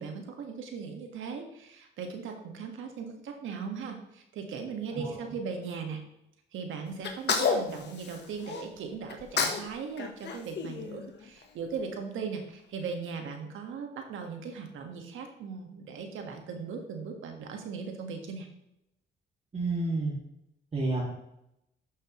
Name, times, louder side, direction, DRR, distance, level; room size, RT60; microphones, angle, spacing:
voice 1, 0.0-6.0 6.5-18.5, right 5 dB, 80° right, 4 dB, 1.8 m, -38 dB
Sneeze, 7.0-8.6 9.1-9.7 10.0-11.4, left 5 dB, 60° left, 1.4 m, -30 dB
voice 2, 19.5-20.1 20.7-21.1, right 2 dB, 35° right, -5 dB, 2.5 m, -30 dB
11.0 x 6.8 x 3.2 m, 0.84 s
cardioid pair, 90°, 20 cm